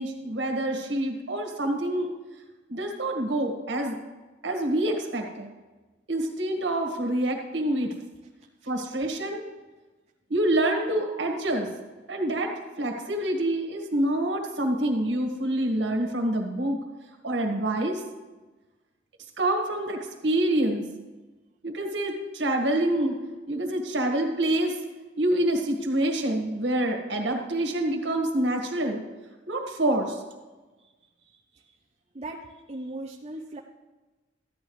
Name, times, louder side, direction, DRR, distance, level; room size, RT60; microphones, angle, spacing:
voice 1, 0.0-2.1 2.7-4.0 4.4-5.5 6.1-7.9 8.7-9.4 10.3-11.7 12.1-12.5 12.8-16.8 17.2-18.0 19.4-20.8 21.6-23.2 23.5-24.7 25.2-29.0 29.5-30.2, right 1 dB, 70° right, 2 dB, 1.8 m, -26 dB
voice 2, 32.7-33.6, right 2 dB, 35° right, 0 dB, 0.6 m, -37 dB
14.5 x 10.5 x 3.2 m, 1.2 s
head